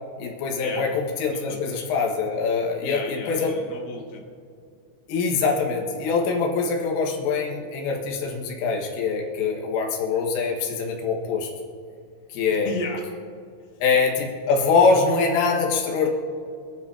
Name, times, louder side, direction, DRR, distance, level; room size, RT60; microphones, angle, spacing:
voice 1, 0.2-3.5 5.1-11.5 12.3-12.7 13.8-16.1, left 4 dB, 85° left, -1 dB, 4.2 m, -23 dB
voice 2, 1.3-1.6 2.8-4.2 12.5-13.1 13.6-13.7, left 3 dB, 65° left, 0 dB, 1.7 m, -35 dB
27.5 x 10.0 x 2.8 m, 2.3 s
omnidirectional pair, 5.7 m